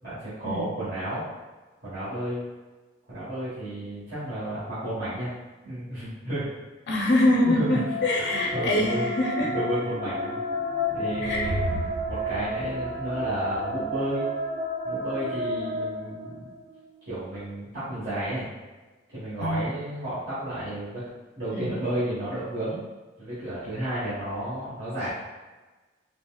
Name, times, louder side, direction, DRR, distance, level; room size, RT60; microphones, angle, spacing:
voice 1, 0.0-1.2 1.8-2.4 3.1-5.3 5.6-6.5 7.4-7.8 8.3-9.1 9.5-10.4 10.9-11.6 12.1-14.3 14.8-16.5 17.0-18.5 19.1-21.0 21.3-22.8 23.2-25.1, right 1 dB, 55° right, -14 dB, 1.2 m, -32 dB
voice 2, 6.9-9.5 11.2-11.4 11.7-11.8 19.4-19.7 21.5-21.8, left 1 dB, 60° left, -2 dB, 0.4 m, -24 dB
sound 1, 7.5-16.7, left 1 dB, 35° right, 0.4 m, -32 dB
sound 2, 10.6-14.0, right 1 dB, 85° right, 0.8 m, -35 dB
4.2 x 2.0 x 2.2 m, 1.3 s
head